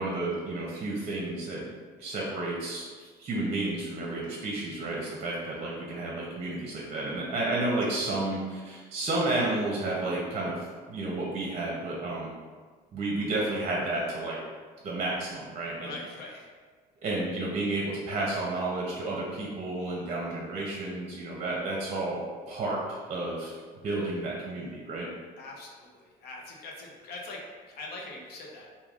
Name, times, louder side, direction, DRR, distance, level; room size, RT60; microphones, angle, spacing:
voice 1, 0.0-1.7 2.0-12.3 12.9-14.4 14.8-15.9 17.0-23.5 23.8-25.1, right 2 dB, 40° right, -3 dB, 0.6 m, -31 dB
voice 2, 15.8-16.5 25.4-28.7, left 2 dB, 70° left, -1 dB, 0.6 m, -43 dB
3.3 x 2.3 x 2.3 m, 1.5 s
cardioid pair, 110°, 17 cm